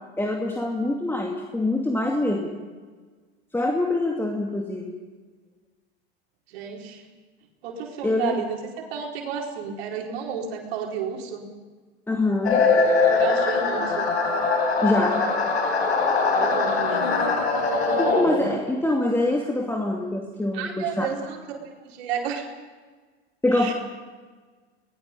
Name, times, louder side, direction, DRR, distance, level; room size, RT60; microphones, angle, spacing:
voice 1, 0.2-2.5 3.5-4.9 8.0-8.4 12.1-12.6 14.8-15.2 18.0-21.1 23.4-23.7, left 2 dB, 5° left, 1 dB, 2.3 m, -24 dB
voice 2, 6.5-7.0 7.6-11.4 13.1-14.0 16.3-17.1 20.5-22.5 23.5-23.7, right 7 dB, 70° right, 0 dB, 4.5 m, -31 dB
sound 1, 12.4-18.6, left 4 dB, 85° left, 5.5 m, -22 dB
26.0 x 20.0 x 5.3 m, 1.4 s
hypercardioid pair, 100°, 32 cm